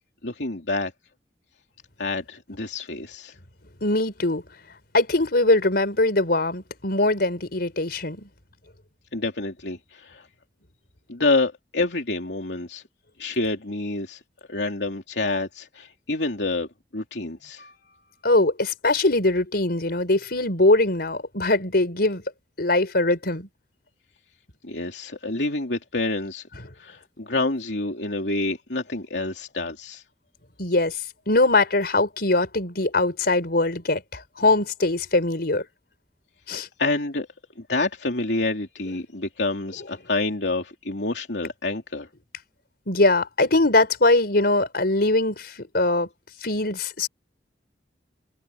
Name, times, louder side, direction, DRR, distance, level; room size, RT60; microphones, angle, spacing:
voice 1, 0.2-0.9 2.0-3.3 9.1-10.3 11.1-12.8 13.2-14.2 14.5-16.7 16.9-17.6 24.6-26.5 26.8-30.0 36.8-37.3 37.6-42.1, left 2 dB, 80° left, 3.1 m, -27 dB
voice 2, 3.8-4.4 4.9-8.3 17.6-17.7 18.2-22.2 22.6-23.5 30.6-31.0 31.3-35.6 36.5-36.7 42.9-46.1 46.4-47.1, left 2 dB, 60° left, 4.9 m, -22 dB
head